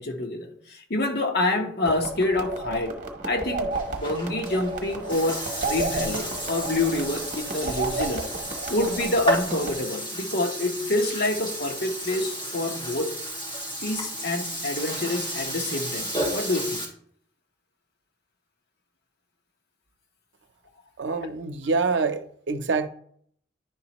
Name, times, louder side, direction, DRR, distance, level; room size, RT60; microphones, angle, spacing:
voice 1, 0.0-3.0 3.2-8.3 8.7-13.1 13.8-16.8, left 2 dB, 60° left, 1.0 m, -27 dB
sound 1, 1.8-9.7, right 2 dB, 40° right, 1.0 m, -32 dB
Burping eructation, 3.7-16.8, right 1 dB, 30° left, 2.9 m, -33 dB
voice 2, 21.0-22.9, right 4 dB, 80° right, 0.6 m, -26 dB
10.5 x 4.2 x 3.0 m
head